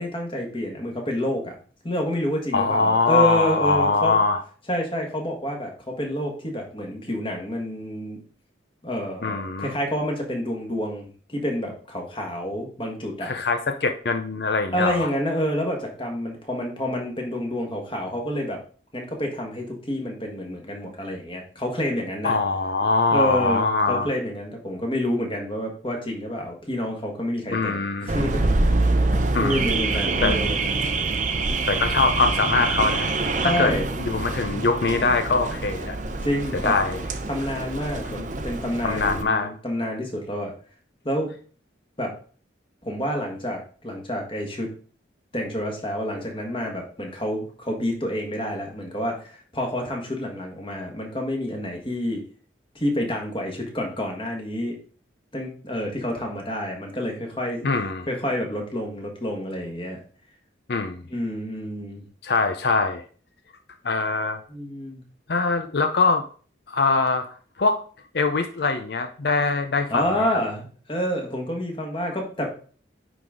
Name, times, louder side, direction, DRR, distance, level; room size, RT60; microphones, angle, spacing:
voice 1, 0.0-1.5 1.8-4.1 4.7-8.2 8.8-13.3 14.7-18.6 18.9-22.4 23.1-28.7 29.4-30.6 33.4-33.9 36.2-36.7 37.3-40.5 41.0-41.3 42.0-42.2 42.8-44.7 45.3-52.2 52.7-54.7 55.3-57.7 58.1-60.0 61.1-62.0 64.5-65.0 69.9-72.5, equal, 25° left, 1 dB, 1.6 m, -28 dB
voice 2, 2.5-4.4 9.2-9.7 13.2-15.1 22.2-24.1 27.5-28.1 29.3-29.7 29.9-30.4 31.7-33.1 33.4-33.7 34.0-36.0 36.6-37.0 38.1-38.3 38.8-39.5 57.6-58.1 60.7-61.0 62.2-63.0 63.8-64.4 65.3-66.2 66.7-67.8 68.1-70.1, left 3 dB, 60° left, 7 dB, 0.6 m, -23 dB
Car / Alarm, 28.1-39.2, right 3 dB, 40° right, 0.7 m, -25 dB
9.6 x 4.0 x 3.6 m, 0.42 s
head